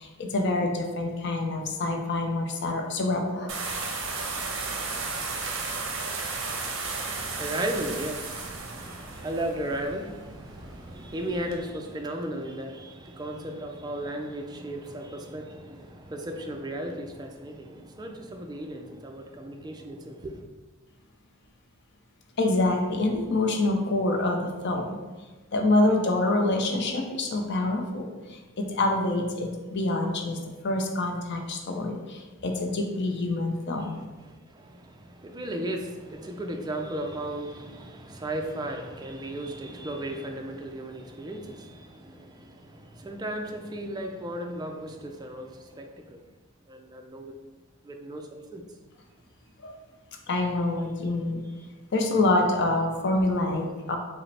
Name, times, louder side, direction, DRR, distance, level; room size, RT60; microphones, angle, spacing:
voice 1, 0.0-3.5 22.4-25.0 25.5-34.0 49.6-49.8 50.3-51.4 51.9-54.0, left 2 dB, 55° left, 2 dB, 0.5 m, -26 dB
sound 1, 3.5-11.6, right 3 dB, 65° right, 0.6 m, -34 dB
voice 2, 6.9-20.4 34.2-46.2 46.7-47.3 47.8-48.6, right 1 dB, 20° right, 3 dB, 0.3 m, -35 dB
4.9 x 2.1 x 3.2 m, 1.2 s
head